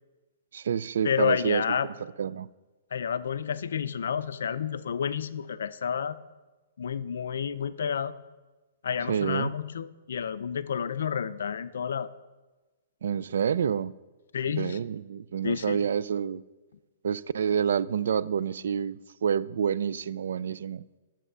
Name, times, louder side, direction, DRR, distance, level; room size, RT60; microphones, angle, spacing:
voice 1, 0.5-2.5 9.1-9.6 13.0-13.9 14.5-16.4 17.0-20.9, right 7 dB, 65° right, 0.3 m, -28 dB
voice 2, 1.0-1.9 2.9-6.2 6.8-8.1 8.8-12.1 14.3-14.8 15.4-15.8, left 7 dB, 75° left, 0.5 m, -30 dB
10.5 x 7.4 x 5.5 m
hypercardioid pair, 170°, 0 cm